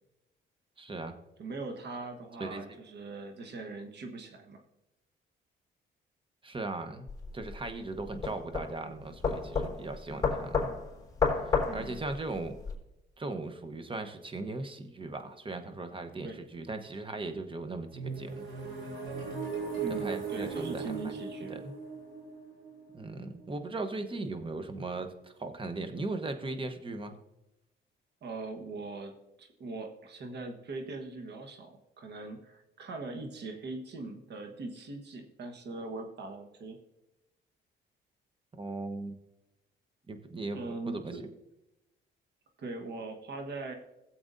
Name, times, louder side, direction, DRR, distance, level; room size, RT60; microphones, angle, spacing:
voice 1, 0.8-1.2 2.4-2.6 6.4-7.1 7.3-10.7 11.7-12.6 13.2-18.5 20.0-21.2 21.5-21.7 22.9-27.2 38.5-39.1 40.1-41.3, right 2 dB, 25° right, 8 dB, 1.1 m, -38 dB
voice 2, 1.4-4.6 11.7-12.0 16.2-16.4 19.8-21.5 28.2-29.1 29.4-36.8 40.5-41.3 42.6-43.7, right 3 dB, 60° right, 4 dB, 1.3 m, -41 dB
sound 1, 7.1-12.7, left 5 dB, 20° left, 3.9 m, -32 dB
sound 2, 17.9-23.7, right 5 dB, 85° right, 3.7 m, -38 dB
16.5 x 7.8 x 2.7 m, 0.94 s
cardioid pair, 90°, 20 cm